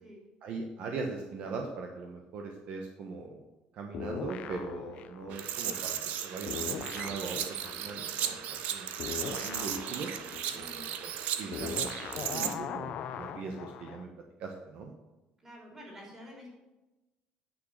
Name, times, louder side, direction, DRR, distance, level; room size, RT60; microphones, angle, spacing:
voice 1, 0.4-3.4 3.7-6.0 6.2-10.1 10.5-11.1 11.4-14.1 14.4-14.9, right 4 dB, 50° right, 2 dB, 1.1 m, -40 dB
sound 1, 3.9-6.2 6.5-14.0, left 8 dB, 50° left, 0.7 m, -41 dB
sound 2, 5.3-12.5, right 9 dB, 70° right, 0.9 m, -36 dB
voice 2, 10.5-10.9 15.4-16.5, left 1 dB, 15° right, -2 dB, 3.6 m, -49 dB
9.4 x 6.4 x 7.9 m, 1.1 s
cardioid pair, 170°, 3 cm